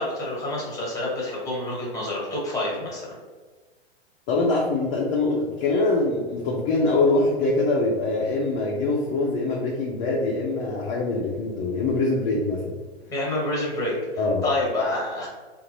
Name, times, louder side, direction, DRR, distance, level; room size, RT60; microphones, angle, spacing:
voice 1, 0.0-3.1 13.1-15.3, left 1 dB, 10° left, -4 dB, 1.3 m, -28 dB
voice 2, 4.3-12.6 14.2-14.4, left 2 dB, 30° left, -3 dB, 0.6 m, -23 dB
3.8 x 2.5 x 3.0 m, 1.4 s
hypercardioid pair, 125°, 33 cm